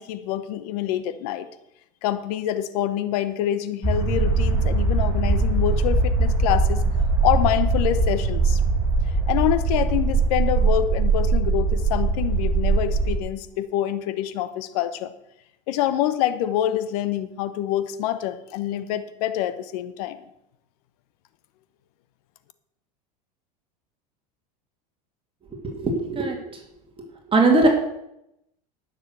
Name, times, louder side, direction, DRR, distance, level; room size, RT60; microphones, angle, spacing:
voice 1, 0.0-1.5 2.0-6.8 7.2-8.6 9.3-15.1 15.7-20.2, left 12 dB, 70° left, 13 dB, 1.0 m, -26 dB
sound 1, 3.8-13.2, right 3 dB, 10° right, 5.5 m, -21 dB
voice 2, 25.6-26.6 27.3-27.7, right 2 dB, 25° right, 2 dB, 2.4 m, -20 dB
10.5 x 6.7 x 7.9 m, 0.82 s
hypercardioid pair, 100°, 20 cm